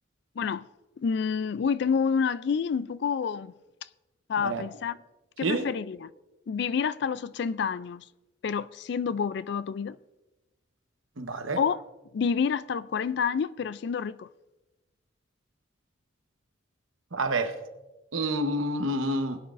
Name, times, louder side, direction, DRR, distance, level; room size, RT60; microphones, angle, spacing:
voice 1, 0.4-0.7 1.0-3.5 4.3-5.0 5.4-6.1 6.5-8.1 8.4-10.0 11.6-11.8 12.1-14.3, left 6 dB, 55° left, 0.3 m, -28 dB
voice 2, 11.2-11.6 17.1-17.5 18.1-19.4, right 1 dB, 85° right, 1.1 m, -28 dB
19.0 x 9.3 x 2.5 m
head